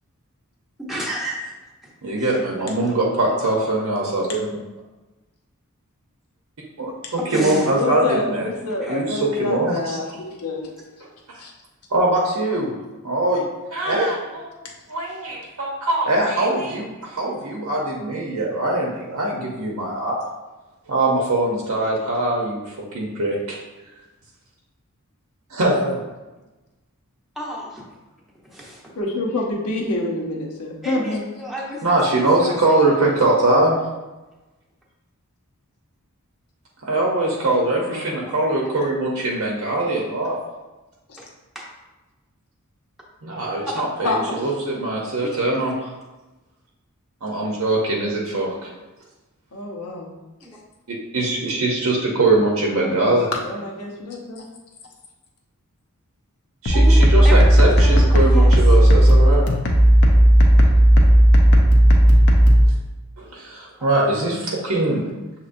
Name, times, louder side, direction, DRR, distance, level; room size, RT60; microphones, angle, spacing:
voice 1, 0.8-1.5 2.2-2.9 3.2-3.3 7.2-7.7 8.8-9.0 27.4-27.9 28.4-28.9 30.8-32.6 32.9-33.0 37.3-37.5 38.2-38.7 41.5-41.6 43.7-43.8 45.2-45.5 50.4-50.6 52.8-52.9 56.7-58.5 63.8-63.9, right 1 dB, ahead, -6 dB, 0.9 m, -32 dB
voice 2, 2.0-4.5 6.8-8.5 8.9-10.0 11.3-11.4 11.9-12.7 13.0-13.4 13.7-14.6 14.9-20.2 20.9-23.6 25.5-26.0 31.8-33.8 36.8-40.4 43.2-45.9 47.2-48.7 50.9-53.3 56.6-59.5 63.2-65.1, right 2 dB, 70° right, -2 dB, 0.7 m, -22 dB
voice 3, 7.7-10.7 11.4-11.5 14.6-14.7 29.0-31.3 37.9-38.1 41.1-41.2 44.0-44.6 49.5-50.1 52.8-54.4, left 2 dB, 80° left, -1 dB, 0.9 m, -27 dB
sound 1, 56.7-62.7, equal, 55° left, 0.7 m, -13 dB
6.6 x 2.9 x 2.6 m, 1.1 s
head